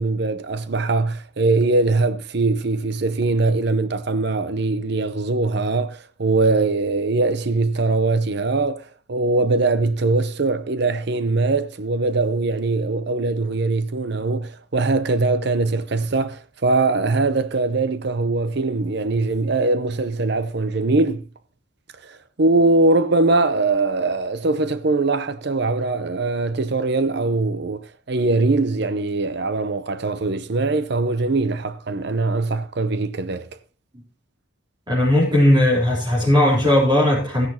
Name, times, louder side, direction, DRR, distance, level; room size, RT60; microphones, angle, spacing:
voice 1, 0.0-21.2 22.0-33.5, right 3 dB, 55° right, 0.7 m, -21 dB
voice 2, 34.9-37.5, left 1 dB, 25° right, 3.9 m, -17 dB
15.5 x 10.5 x 2.8 m
head